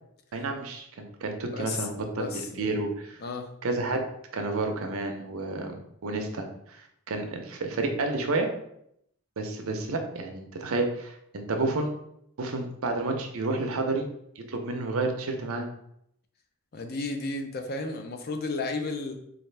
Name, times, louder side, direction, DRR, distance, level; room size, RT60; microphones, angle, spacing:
voice 1, 0.3-3.2 3.6-4.0 4.3-5.7 6.0-8.5 9.4-11.9 12.4-14.1 14.4-15.7, right 2 dB, 70° right, 4 dB, 0.6 m, -30 dB
voice 2, 1.5-1.9 2.2-2.8 3.2-3.5 16.7-19.2, left 3 dB, 45° left, 5 dB, 0.4 m, -33 dB
4.2 x 2.4 x 3.3 m, 0.75 s
head